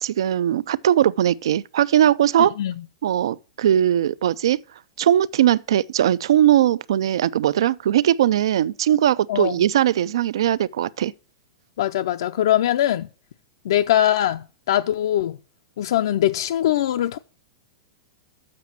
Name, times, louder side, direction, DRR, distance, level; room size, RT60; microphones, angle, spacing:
voice 1, 0.0-2.6 3.0-4.6 5.0-11.1, right 11 dB, 75° right, 0.4 m, -19 dB
voice 2, 2.4-2.7 9.3-9.5 11.8-13.1 13.6-15.4 15.8-17.2, left 12 dB, 65° left, 0.5 m, -21 dB
7.5 x 6.0 x 7.2 m
supercardioid pair, 170°, 3 cm